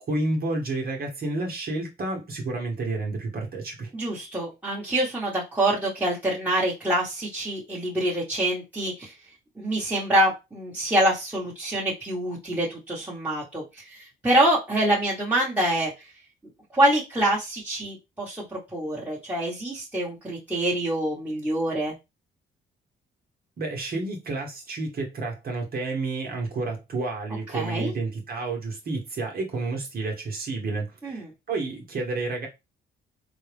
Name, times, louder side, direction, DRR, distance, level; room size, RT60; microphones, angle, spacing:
voice 1, 0.1-3.9 23.6-32.5, right 3 dB, 50° right, 1.1 m, -30 dB
voice 2, 3.9-9.1 9.6-16.1 16.7-21.9 27.5-27.9 31.0-31.3, right 1 dB, 10° right, 1.3 m, -26 dB
4.0 x 2.4 x 3.4 m
cardioid pair, 90°, 20 cm